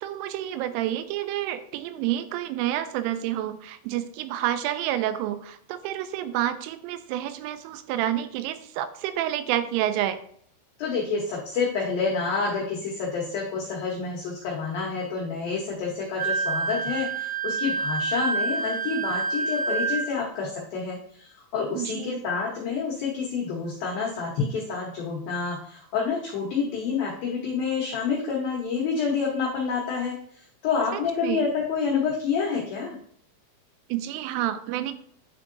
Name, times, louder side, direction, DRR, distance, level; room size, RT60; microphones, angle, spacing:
voice 1, 0.0-10.2 21.7-22.2 30.9-31.5 33.9-34.9, right 12 dB, 85° right, 11 dB, 3.1 m, -29 dB
voice 2, 10.8-30.1 30.6-33.0, left 5 dB, 85° left, -3 dB, 2.0 m, -28 dB
Wind instrument woodwind instrument, 16.2-20.0, right 4 dB, 60° right, 2.6 m, -27 dB
10.5 x 3.6 x 2.6 m, 0.62 s
omnidirectional pair, 5.6 m